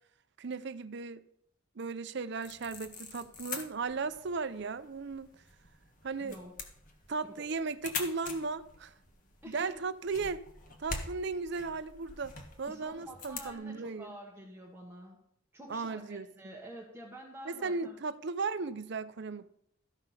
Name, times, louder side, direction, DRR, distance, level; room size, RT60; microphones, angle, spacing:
voice 1, 0.4-1.2 1.8-5.3 6.0-6.4 7.1-8.9 9.5-10.4 10.8-12.3 12.6-14.1 15.7-16.3 17.5-19.5, right 4 dB, 55° right, 0.6 m, -36 dB
sound 1, 2.4-13.5, left 4 dB, 40° left, 1.4 m, -45 dB
voice 2, 6.2-6.5 6.9-7.0 7.2-7.5 9.4-9.8 12.7-15.3 15.5-18.0, equal, 10° right, 1.3 m, -48 dB
14.0 x 5.8 x 5.8 m
head